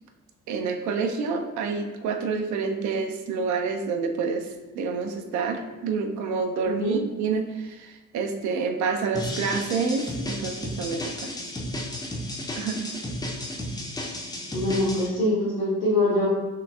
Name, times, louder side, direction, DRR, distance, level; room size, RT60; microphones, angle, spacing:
voice 1, 0.5-11.3 12.6-12.9, right 5 dB, 45° right, 6 dB, 0.6 m, -28 dB
voice 2, 6.6-7.0 14.5-16.3, left 1 dB, 85° left, -12 dB, 1.3 m, -24 dB
sound 1, 9.1-15.1, left 1 dB, 10° left, 0.6 m, -33 dB
4.7 x 3.2 x 2.3 m, 1.1 s
figure-of-eight pair, 45°, 41 cm